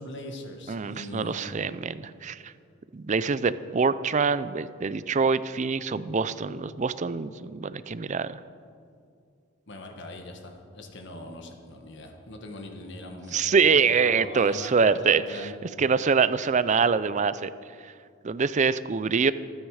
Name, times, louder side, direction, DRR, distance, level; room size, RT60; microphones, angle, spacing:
voice 1, 0.0-1.5 9.7-15.5, left 1 dB, 60° left, 3 dB, 1.5 m, -41 dB
voice 2, 0.7-2.5 2.9-8.4 13.3-15.5 15.8-17.5 18.2-19.3, right 5 dB, 35° right, 15 dB, 0.5 m, -25 dB
26.0 x 9.5 x 4.9 m, 2.4 s
head